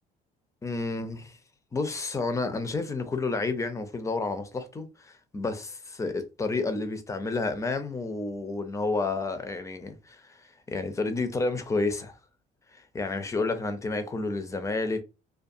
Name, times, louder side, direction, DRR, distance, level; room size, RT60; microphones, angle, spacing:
voice 1, 0.6-1.4 1.7-12.1 12.7-15.0, left 3 dB, 20° left, 0.4 m, -30 dB
2.4 x 2.2 x 2.6 m
cardioid pair, 110°, 17 cm